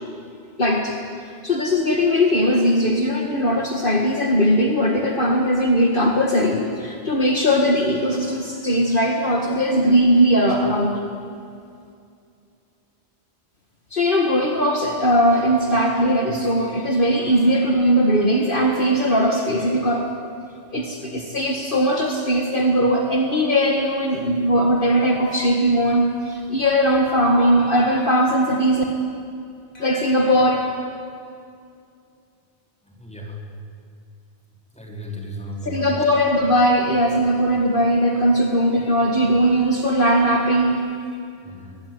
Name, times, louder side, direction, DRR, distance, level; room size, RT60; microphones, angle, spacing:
voice 1, 0.6-1.0 1.3-11.0 13.9-20.1 20.7-28.8 29.7-30.7 35.7-40.9, equal, 50° left, 2 dB, 2.1 m, -19 dB
voice 2, 32.8-33.4 34.7-36.0 41.4-41.8, equal, 5° left, -1 dB, 4.5 m, -35 dB
23.5 x 20.5 x 9.5 m, 2.4 s
omnidirectional pair, 1.2 m